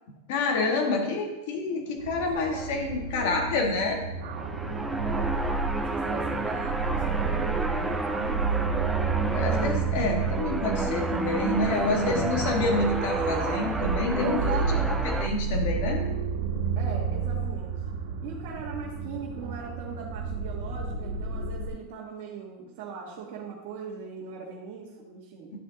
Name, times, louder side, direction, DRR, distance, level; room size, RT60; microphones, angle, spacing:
voice 1, 0.3-4.0 9.2-14.8 15.0-16.0, left 3 dB, 50° left, 1 dB, 1.6 m, -28 dB
sound 1, 2.0-21.7, right 5 dB, 65° right, 1.5 m, -31 dB
voice 2, 2.3-2.7 3.1-3.6 4.8-4.9 5.9-8.7 11.6-12.1 14.2-14.9 16.8-17.7 18.2-25.5, right 6 dB, 40° right, -5 dB, 1.5 m, -38 dB
sound 2, 4.2-15.3, right 3 dB, 5° right, 0.4 m, -31 dB
11.5 x 5.2 x 4.0 m, 1.0 s
supercardioid pair, 180°, 0 cm